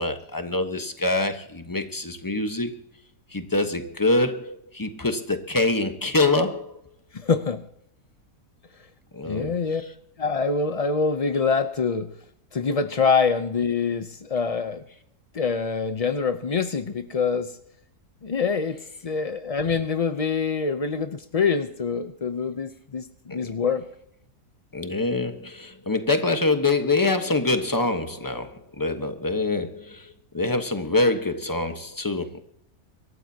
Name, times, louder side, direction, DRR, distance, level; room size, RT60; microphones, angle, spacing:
voice 1, 0.0-2.7 3.3-6.8 9.1-9.6 23.3-23.4 24.7-32.4, left 2 dB, 15° left, 1.0 m, -25 dB
voice 2, 7.1-7.6 9.3-9.8 10.2-12.1 12.5-14.8 15.3-17.5 18.2-18.8 19.0-23.8, left 5 dB, 70° left, 0.3 m, -25 dB
25.0 x 13.5 x 2.8 m
omnidirectional pair, 1.7 m